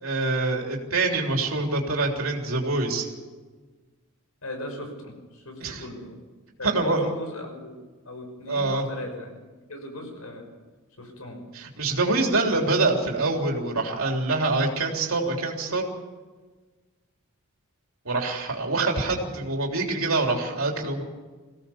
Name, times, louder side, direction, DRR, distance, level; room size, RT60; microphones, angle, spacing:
voice 1, 0.0-3.1 5.6-5.8 6.6-7.1 8.5-8.8 11.5-15.9 18.1-21.0, right 3 dB, 70° right, 1 dB, 3.5 m, -25 dB
voice 2, 4.4-6.2 6.6-7.7 8.0-10.5 11.0-11.4, left 1 dB, 90° left, 4 dB, 6.2 m, -38 dB
22.5 x 17.0 x 7.2 m, 1.3 s
head